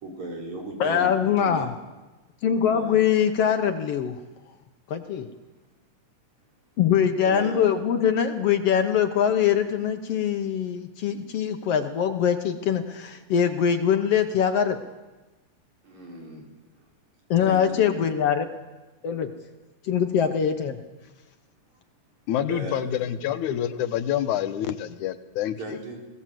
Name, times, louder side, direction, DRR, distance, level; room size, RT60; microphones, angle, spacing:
voice 1, 0.0-1.7 2.6-3.0 7.3-7.7 15.8-16.4 17.4-18.0 22.5-23.1 25.6-26.0, right 1 dB, 70° right, -1 dB, 5.9 m, -36 dB
voice 2, 0.8-1.7 2.4-4.2 4.9-5.3 6.8-14.8 17.3-18.5 19.0-19.3 19.8-20.8, left 8 dB, 65° left, 7 dB, 1.8 m, -23 dB
voice 3, 22.3-25.6, left 10 dB, 85° left, 10 dB, 2.4 m, -27 dB
20.5 x 18.0 x 7.6 m, 1.1 s
omnidirectional pair, 3.4 m